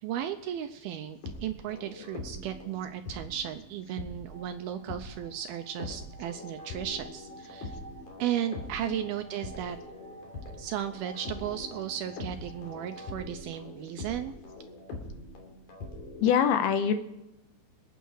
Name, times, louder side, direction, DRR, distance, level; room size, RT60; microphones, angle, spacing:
voice 1, 0.0-7.7 8.2-9.8 10.6-14.3, right 10 dB, 80° right, 8 dB, 2.3 m, -35 dB
sound 1, 1.0-4.4 4.9-5.1 5.8-16.4, left 2 dB, 50° left, 4.1 m, -43 dB
sound 2, 4.3-13.3, right 1 dB, 30° left, 1.8 m, -51 dB
voice 2, 16.2-16.9, left 8 dB, 75° left, 8 dB, 2.7 m, -24 dB
27.0 x 9.3 x 4.7 m, 0.92 s
omnidirectional pair, 4.9 m